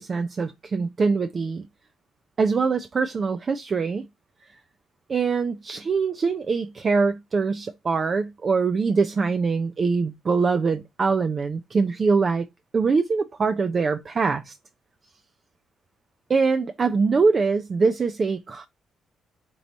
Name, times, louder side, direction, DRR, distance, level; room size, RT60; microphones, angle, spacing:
voice 1, 0.0-1.7 2.4-4.1 5.1-12.5 12.7-14.5 16.3-18.7, right 4 dB, 40° right, 0.4 m, -23 dB
4.6 x 2.6 x 4.1 m
cardioid pair, 90°, 0 cm